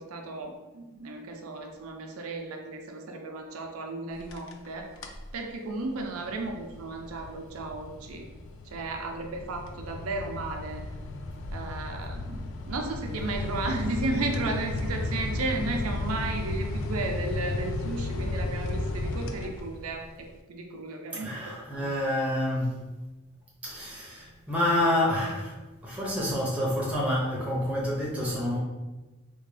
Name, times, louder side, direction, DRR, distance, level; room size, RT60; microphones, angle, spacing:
voice 1, 0.0-4.9 5.3-8.2 8.7-10.8 11.5-12.4 12.7-21.9, right 2 dB, 85° right, 3 dB, 0.5 m, -34 dB
sound 1, 4.1-4.7 5.0-5.3 5.7-20.0, left 2 dB, 65° left, 0.4 m, -34 dB
voice 2, 21.2-22.8 23.6-28.6, left 1 dB, 5° right, -5 dB, 0.7 m, -28 dB
3.4 x 2.2 x 3.2 m, 1.2 s
head